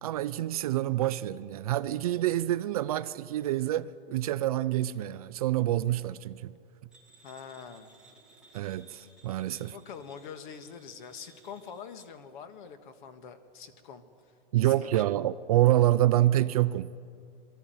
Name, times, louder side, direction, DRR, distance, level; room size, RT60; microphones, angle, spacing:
voice 1, 0.0-6.5 8.5-9.7 14.5-17.0, right 14 dB, 40° right, 0.4 m, -27 dB
sound 1, 6.9-12.1, right 3 dB, 5° right, 2.1 m, -59 dB
voice 2, 7.2-7.9 9.5-14.0 14.6-15.0, left 7 dB, 55° left, 1.7 m, -45 dB
23.0 x 13.5 x 9.3 m
supercardioid pair, 165°, 29 cm